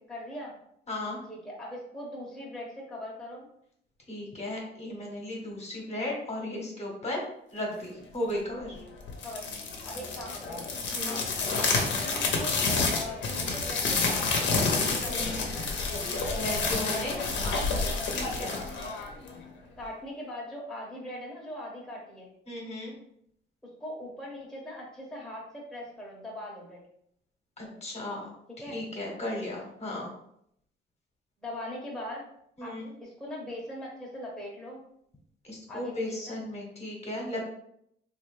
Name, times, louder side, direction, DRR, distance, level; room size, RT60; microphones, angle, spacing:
voice 1, 0.1-0.5 1.3-3.5 9.2-9.4 9.8-10.6 11.0-11.2 11.9-14.5 15.0-15.7 17.0-17.2 19.8-22.3 23.8-26.8 27.6-27.8 28.6-28.8 31.4-32.2 32.6-32.7 33.0-34.8 35.7-36.4, left 1 dB, 5° left, -4 dB, 0.9 m, -40 dB
voice 2, 0.9-1.2 4.1-7.2 7.5-8.8 10.9-11.2 15.1-15.4 16.3-17.1 17.4-18.6 22.5-22.9 27.6-28.3 28.7-30.1 32.6-32.8 35.4-37.5, left 1 dB, 35° left, -1 dB, 1.1 m, -35 dB
sound 1, 9.1-19.4, left 4 dB, 65° left, 0.7 m, -29 dB
3.1 x 2.5 x 3.2 m, 0.73 s
cardioid pair, 90°, 20 cm